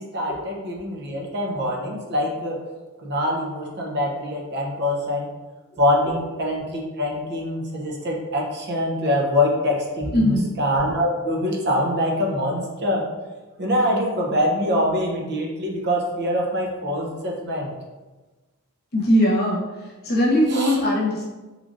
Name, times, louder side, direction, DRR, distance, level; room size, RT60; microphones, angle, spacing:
voice 1, 0.0-2.6 3.0-5.3 5.8-13.0 13.6-17.7 20.5-20.7, left 1 dB, 50° right, -1 dB, 0.6 m, -24 dB
voice 2, 10.1-10.5 18.9-21.3, equal, 45° left, -5 dB, 1.0 m, -20 dB
3.7 x 3.1 x 2.5 m, 1.2 s
head